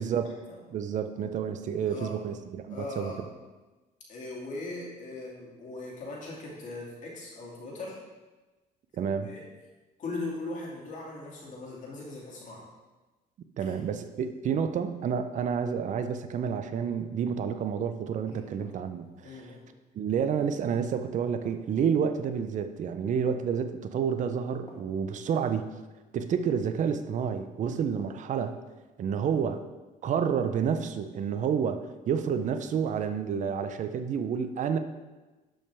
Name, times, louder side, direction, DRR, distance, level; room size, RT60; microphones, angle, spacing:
voice 1, 0.0-0.3 0.7-3.1 9.0-9.3 13.6-19.4 20.0-25.7 26.1-28.6 29.0-29.6 30.0-34.8, right 7 dB, 45° right, 9 dB, 0.6 m, -29 dB
voice 2, 2.7-3.2 4.1-8.0 9.0-9.4 10.0-12.6 18.3-18.5 19.2-19.6, left 2 dB, 50° left, -4 dB, 2.5 m, -39 dB
sound 1, 18.6-19.4 21.4-22.5 24.7-25.4 28.0-28.6, left 2 dB, 20° left, 2.1 m, -53 dB
12.0 x 5.6 x 3.5 m, 1.2 s
cardioid pair, 110°, 17 cm